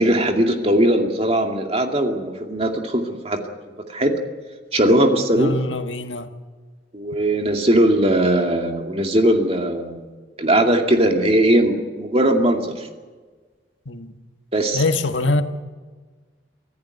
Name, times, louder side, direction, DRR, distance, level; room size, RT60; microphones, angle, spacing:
voice 1, 0.0-3.4 3.9-4.1 4.7-5.6 6.9-10.1 10.4-12.9 14.5-14.9, right 1 dB, 35° right, 2.4 m, -19 dB
voice 2, 5.3-6.3 13.8-14.1 14.7-15.4, left 2 dB, 90° left, 1.6 m, -23 dB
25.0 x 14.5 x 9.2 m
head